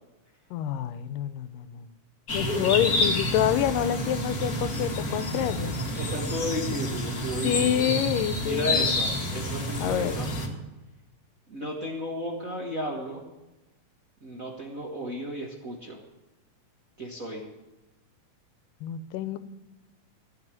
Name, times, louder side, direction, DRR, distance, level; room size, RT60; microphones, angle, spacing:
voice 1, 0.5-1.9 2.3-5.8 7.4-8.9 9.8-10.2 18.8-19.4, left 11 dB, 85° left, 13 dB, 2.3 m, -27 dB
sound 1, 2.3-10.5, left 1 dB, 40° left, 1.5 m, -29 dB
voice 2, 5.7-7.9 8.4-10.5 11.5-13.2 14.2-16.0 17.0-17.5, equal, 40° right, -2 dB, 1.2 m, -34 dB
16.0 x 5.7 x 9.6 m, 1.0 s
omnidirectional pair, 3.8 m